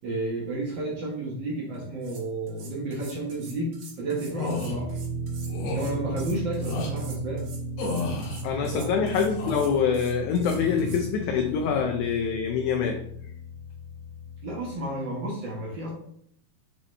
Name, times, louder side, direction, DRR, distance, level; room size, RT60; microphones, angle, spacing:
voice 1, 0.0-5.0 5.7-7.4 8.5-8.9 14.4-15.9, right 2 dB, 65° right, -4 dB, 1.1 m, -32 dB
sound 1, 1.7-1.8 2.0-11.0, right 4 dB, 85° right, 3.3 m, -47 dB
sound 2, 4.3-4.7 5.5-5.9 6.6-6.9 7.8-8.4 9.1-9.8 10.4-11.1 11.4-11.8, left 2 dB, 65° left, 2.4 m, -33 dB
sound 3, 4.7-14.7, right 1 dB, 50° right, 1.7 m, -36 dB
voice 2, 8.4-13.0, left 6 dB, 90° left, 4 dB, 1.7 m, -25 dB
7.3 x 4.0 x 3.2 m, 0.70 s
omnidirectional pair, 4.0 m